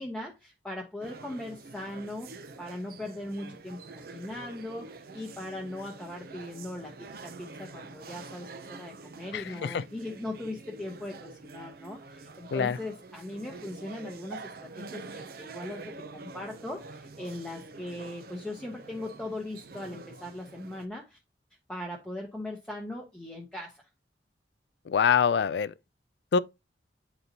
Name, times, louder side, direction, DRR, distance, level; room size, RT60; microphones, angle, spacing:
voice 1, 0.0-21.2 21.7-23.8, left 1 dB, 5° left, 0.8 m, -39 dB
sound 1, 1.0-20.9, right 3 dB, 55° right, 0.6 m, -46 dB
voice 2, 9.3-9.8 12.5-12.8 24.9-25.7 26.3-26.4, left 6 dB, 70° left, 0.4 m, -25 dB
9.3 x 4.0 x 2.8 m
head